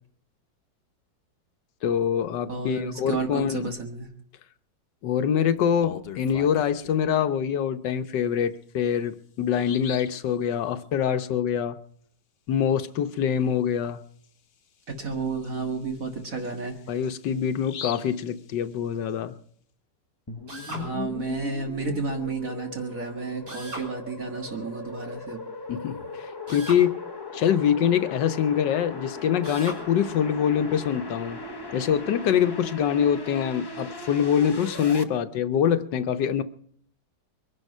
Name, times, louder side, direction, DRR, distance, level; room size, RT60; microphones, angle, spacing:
voice 1, 1.8-3.7 5.0-11.8 12.5-14.0 16.9-19.3 25.7-27.0 27.3-31.4 31.7-36.4, left 8 dB, 75° left, 9 dB, 1.5 m, -24 dB
voice 2, 2.5-4.1 14.9-16.7 20.7-25.4, right 4 dB, 50° right, 3 dB, 2.0 m, -31 dB
Bird vocalization bird call bird song, 5.6-7.1 8.5-8.6 9.1-9.2 9.5-10.2 13.7-13.8 14.2-14.3 14.9-19.1, left 8 dB, 55° left, 0.6 m, -43 dB
sound 1, 20.3-35.0, left 2 dB, 20° left, 0.7 m, -38 dB
Drill, 20.5-20.9 23.5-23.9 26.5-26.9 29.4-29.8, right 1 dB, 70° right, 4.5 m, -37 dB
22.5 x 11.0 x 5.5 m, 0.62 s
omnidirectional pair, 1.9 m